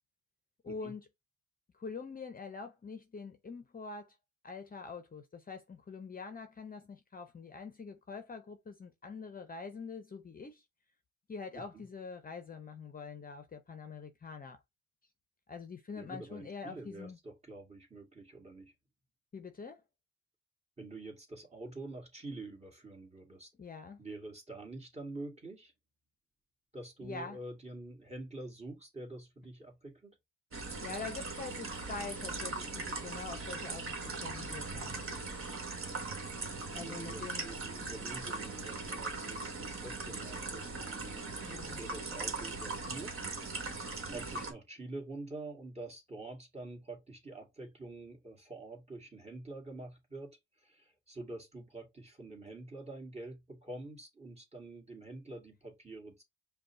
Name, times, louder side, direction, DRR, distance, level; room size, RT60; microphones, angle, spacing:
voice 1, 0.6-1.1 1.7-4.2 4.4-10.6 11.3-14.6 15.5-17.2 19.3-19.8 23.6-24.0 27.0-27.4 30.8-35.0 36.7-37.5 41.4-41.8, left 4 dB, 30° left, 0.7 m, -45 dB
voice 2, 11.5-11.8 15.9-18.7 20.8-23.5 24.0-25.7 26.7-30.2 36.5-43.2 43.5-56.2, right 2 dB, 20° right, 2.1 m, -47 dB
sound 1, 30.5-44.5, right 3 dB, 45° right, 1.5 m, -40 dB
5.2 x 2.3 x 4.3 m
cardioid pair, 90°, 30 cm